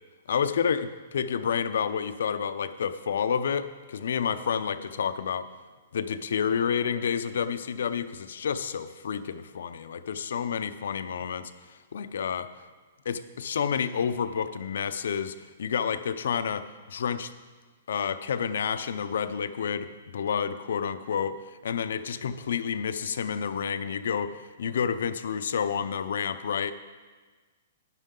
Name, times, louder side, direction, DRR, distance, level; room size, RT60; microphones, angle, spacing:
voice 1, 0.3-0.9 1.1-5.5 5.9-11.5 11.9-12.5 13.1-17.3 17.9-26.7, left 7 dB, 75° left, 12 dB, 0.6 m, -29 dB
12.0 x 10.0 x 3.8 m, 1.4 s
hypercardioid pair, 170°, 0 cm